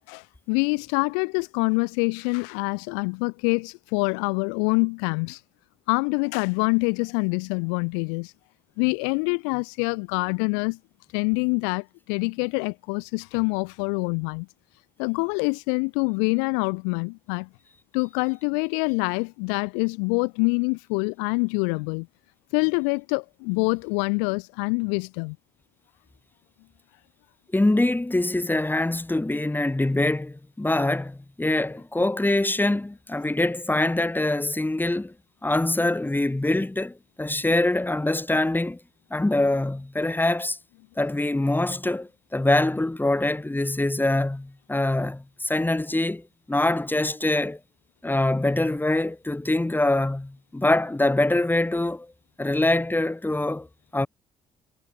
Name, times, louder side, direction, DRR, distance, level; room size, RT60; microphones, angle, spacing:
voice 1, 0.1-5.4 5.9-8.3 8.8-10.8 11.1-14.5 15.0-17.5 17.9-22.1 22.5-25.4, left 40 dB or more, 85° left, 1.6 m, -25 dB
voice 2, 27.5-35.1 35.4-38.8 39.1-40.6 41.0-47.6 48.0-52.1 52.4-53.7 53.9-54.1, left 2 dB, 15° left, 6.4 m, -24 dB
hypercardioid pair, 55°, 14 cm